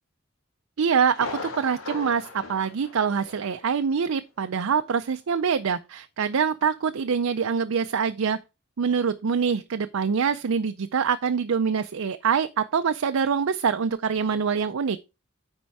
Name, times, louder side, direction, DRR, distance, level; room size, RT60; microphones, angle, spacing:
voice 1, 0.8-8.4 8.8-15.0, right 6 dB, 75° right, 0.5 m, -25 dB
Thunder, 1.1-3.7 4.0-4.1 4.6-4.7, left 3 dB, 90° left, 2.4 m, -38 dB
9.5 x 4.5 x 4.6 m
head